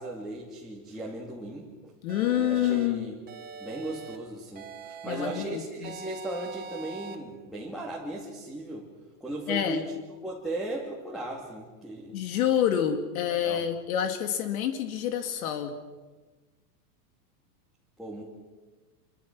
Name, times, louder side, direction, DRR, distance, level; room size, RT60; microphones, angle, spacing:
voice 1, 0.0-1.9 2.4-3.2 3.6-8.9 9.2-9.9 10.2-12.1 13.3-13.7 18.0-18.2, right 1 dB, ahead, -1 dB, 2.5 m, -37 dB
voice 2, 2.0-3.1 5.0-5.9 9.5-9.8 12.1-15.7, left 10 dB, 65° left, 6 dB, 2.6 m, -27 dB
sound 1, 2.1-2.9 3.3-4.2 4.6-5.4 5.8-7.2, right 5 dB, 20° right, 2.6 m, -43 dB
28.0 x 24.5 x 6.2 m, 1.3 s
supercardioid pair, 165°, 46 cm